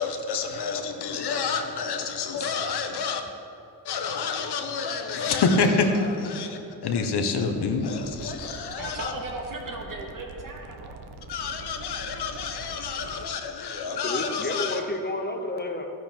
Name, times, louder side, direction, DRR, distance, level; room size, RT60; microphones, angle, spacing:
voice 1, 0.0-3.2 3.8-9.1 11.3-14.8, left 4 dB, 70° left, 5 dB, 1.4 m, -28 dB
sound 1, 8.0-13.3, right 4 dB, 70° right, 1.1 m, -44 dB
voice 2, 8.8-11.0, right 2 dB, 50° right, 0 dB, 2.5 m, -36 dB
voice 3, 14.0-15.9, left 2 dB, 25° left, 4 dB, 1.0 m, -31 dB
14.5 x 11.0 x 4.6 m, 2.8 s
cardioid pair, 125°, 41 cm